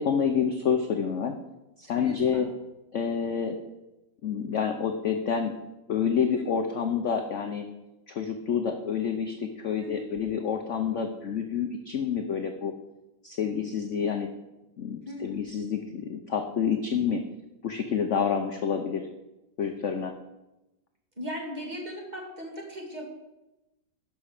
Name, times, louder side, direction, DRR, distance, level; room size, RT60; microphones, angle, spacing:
voice 1, 0.0-1.3 1.8-2.5 2.9-3.6 4.2-5.6 5.9-7.7 8.1-12.7 13.2-14.3 14.8-17.2 17.6-19.1 19.6-20.1, left 7 dB, 55° left, 5 dB, 0.9 m, -28 dB
voice 2, 1.9-2.5 6.4-6.5 9.8-10.1 15.1-15.3 21.2-23.1, equal, 20° right, 0 dB, 2.3 m, -38 dB
11.0 x 6.1 x 6.6 m, 0.97 s
omnidirectional pair, 2.1 m